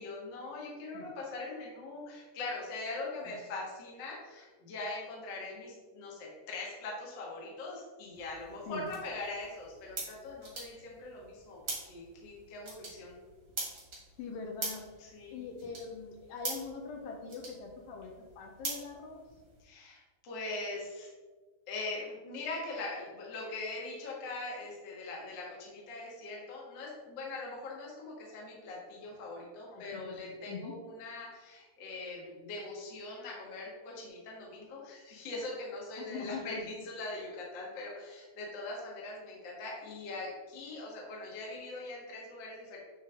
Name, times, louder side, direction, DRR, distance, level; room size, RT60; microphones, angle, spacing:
voice 1, 0.0-11.6 11.8-13.2 15.0-15.4 19.6-21.1 21.7-42.8, left 2 dB, 60° left, -3 dB, 1.2 m, -41 dB
sound 1, 8.1-19.6, right 2 dB, 35° right, 1.4 m, -44 dB
voice 2, 14.2-14.8 15.3-19.2 29.7-30.8 36.0-36.5, left 5 dB, 80° left, 2 dB, 2.4 m, -43 dB
8.3 x 3.2 x 3.6 m, 1.3 s
omnidirectional pair, 4.2 m